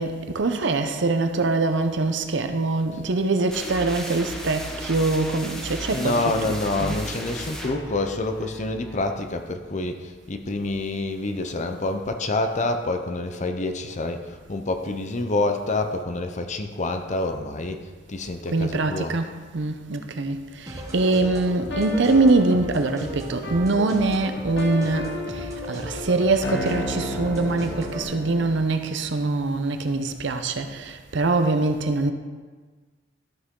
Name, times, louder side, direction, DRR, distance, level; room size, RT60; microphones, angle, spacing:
voice 1, 0.0-7.0 18.5-32.1, right 3 dB, 65° right, 0.7 m, -24 dB
sound 1, 3.5-9.1, equal, 5° left, 1.1 m, -35 dB
voice 2, 5.9-17.8 18.1-19.1, left 2 dB, 40° left, 0.7 m, -27 dB
sound 2, 20.7-28.0, equal, 15° right, 1.5 m, -36 dB
sound 3, 21.7-28.7, left 1 dB, 65° left, 1.3 m, -34 dB
13.0 x 6.2 x 3.7 m
head